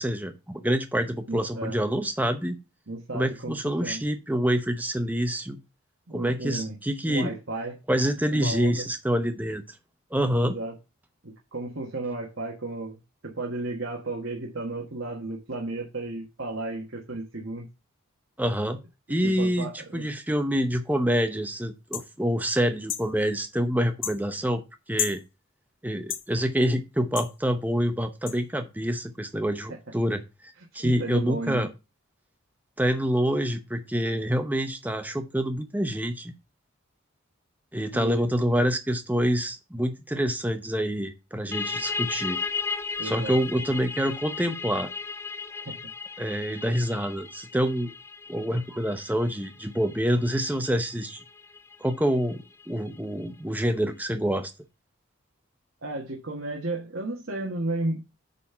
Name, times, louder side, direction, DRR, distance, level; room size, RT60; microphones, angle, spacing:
voice 1, 0.0-2.6 3.1-5.6 6.1-7.3 7.9-9.6 10.1-10.6 18.4-18.8 19.1-24.6 24.9-25.2 25.8-30.2 30.7-31.7 32.8-36.3 37.7-42.4 43.0-44.9 46.2-47.9 48.3-51.2 51.8-54.5, equal, 10° right, 0.8 m, -26 dB
voice 2, 1.3-1.8 2.9-4.0 6.1-6.8 7.1-7.8 8.3-8.9 10.3-10.7 11.2-13.0 13.2-17.7 19.2-20.0 29.7-29.8 30.8-31.7 37.9-38.2 43.0-43.4 45.5-45.8 55.8-58.2, right 2 dB, 65° right, 1.4 m, -33 dB
sound 1, 21.9-22.1 22.9-23.1 24.0-24.2 25.0-25.2 26.1-26.3 27.2-27.3 28.3-28.4, left 10 dB, 60° left, 0.9 m, -30 dB
sound 2, 41.5-52.9, left 4 dB, 10° left, 0.3 m, -36 dB
8.4 x 4.2 x 5.7 m
head